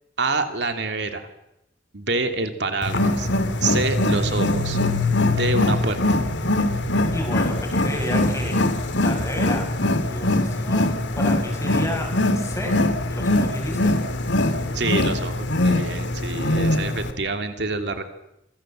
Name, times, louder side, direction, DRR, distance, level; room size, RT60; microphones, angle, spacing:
voice 1, 0.2-1.3 1.9-3.3 3.6-4.8 5.4-6.2 14.7-18.0, right 3 dB, 65° right, 6 dB, 2.8 m, -26 dB
Wild animals, 2.8-17.1, left 1 dB, 80° left, 2.5 m, -22 dB
voice 2, 7.1-8.6 9.0-9.7 10.0-10.9 11.1-12.1 12.4-12.8 13.1-14.0, left 1 dB, 15° left, 2 dB, 7.0 m, -31 dB
28.0 x 24.0 x 7.7 m, 0.84 s
head